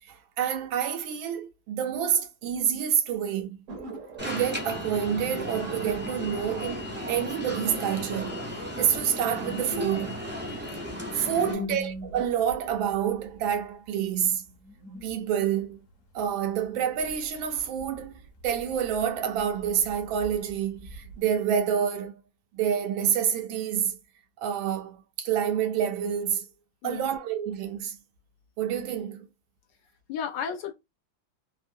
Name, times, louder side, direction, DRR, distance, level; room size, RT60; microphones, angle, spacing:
voice 1, 0.1-3.6 4.2-8.4 8.8-10.2 11.1-14.5 15.0-15.8 16.1-22.2 22.5-24.0 24.4-26.4 26.8-28.0 28.6-29.3, right 8 dB, 80° right, 1.4 m, -28 dB
sound 1, 3.7-6.7 7.0-7.1 7.6-10.6 11.0-11.6, right 4 dB, 55° right, 0.9 m, -46 dB
Alarm, 4.2-11.5, left 1 dB, 15° right, 0.4 m, -35 dB
sound 2, 4.7-21.6, right 2 dB, 50° left, 1.0 m, -46 dB
voice 2, 11.5-11.8 26.8-27.1 30.1-30.7, left 8 dB, 75° left, 1.1 m, -33 dB
3.5 x 2.6 x 2.6 m
omnidirectional pair, 2.2 m